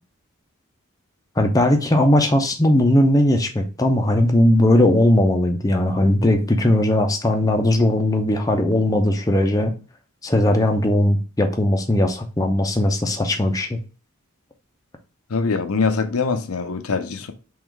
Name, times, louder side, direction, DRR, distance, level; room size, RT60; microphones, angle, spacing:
voice 1, 1.4-9.7 10.2-13.8, left 1 dB, 15° left, 0.6 m, -18 dB
voice 2, 15.3-17.3, left 4 dB, 75° left, 0.7 m, -23 dB
3.8 x 3.1 x 4.5 m
head